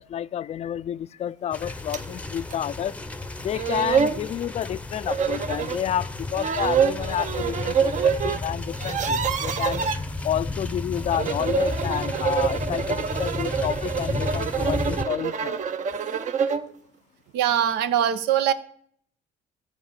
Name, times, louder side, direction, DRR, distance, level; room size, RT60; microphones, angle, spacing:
voice 1, 0.0-3.0 3.4-9.8 10.2-15.6, left 10 dB, 40° left, 0.4 m, -30 dB
sound 1, 1.5-15.0, left 2 dB, 10° left, 0.7 m, -33 dB
sound 2, 1.9-2.1 2.5-2.6 3.3-3.4 3.5-4.2 5.1-5.8 6.3-8.4 8.7-10.0 11.0-16.7, right 7 dB, 45° right, 0.8 m, -26 dB
voice 2, 17.3-18.5, right 10 dB, 85° right, 0.8 m, -22 dB
14.5 x 4.9 x 7.3 m
cardioid pair, 110°, 17 cm